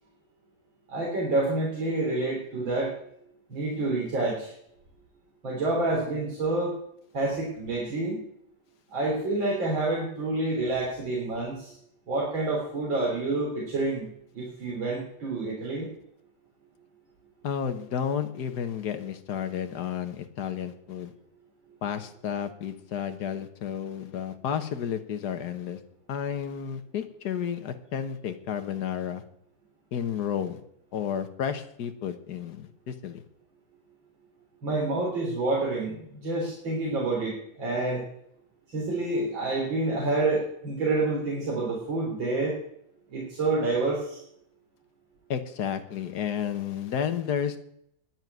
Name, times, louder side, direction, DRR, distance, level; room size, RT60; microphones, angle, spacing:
voice 1, 0.9-2.9 3.5-4.5 5.4-6.7 7.1-8.2 8.9-11.7 12.1-14.1 14.3-15.9 34.6-38.0 38.7-42.6 43.1-44.2, right 2 dB, 90° right, -4 dB, 4.2 m, -28 dB
voice 2, 17.4-21.1 21.8-25.8 26.1-29.2 29.9-30.6 30.9-33.2 45.3-47.6, left 8 dB, 60° left, 8 dB, 1.7 m, -32 dB
10.5 x 8.9 x 9.3 m, 0.71 s
omnidirectional pair, 2.0 m